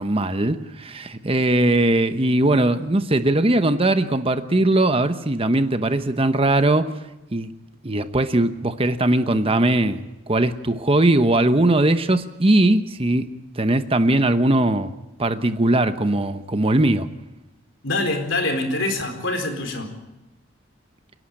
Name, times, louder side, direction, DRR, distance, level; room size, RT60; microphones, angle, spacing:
voice 1, 0.0-6.9 7.3-7.5 7.8-13.3 13.6-14.9 15.2-17.1, right 1 dB, 30° right, 0.9 m, -20 dB
voice 2, 17.8-19.9, left 2 dB, 70° left, 4.3 m, -25 dB
29.5 x 11.5 x 8.9 m
head